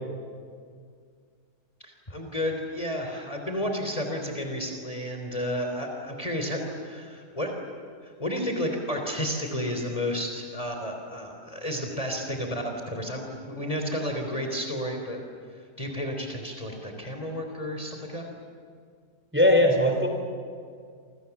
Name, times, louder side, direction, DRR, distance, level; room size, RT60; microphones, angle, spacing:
voice 1, 1.8-7.5 8.0-15.2 15.8-18.3, equal, 20° left, 3 dB, 3.6 m, -32 dB
voice 2, 19.3-20.1, left 1 dB, 5° right, 3 dB, 4.0 m, -19 dB
29.0 x 27.5 x 7.2 m, 2.1 s
omnidirectional pair, 1.7 m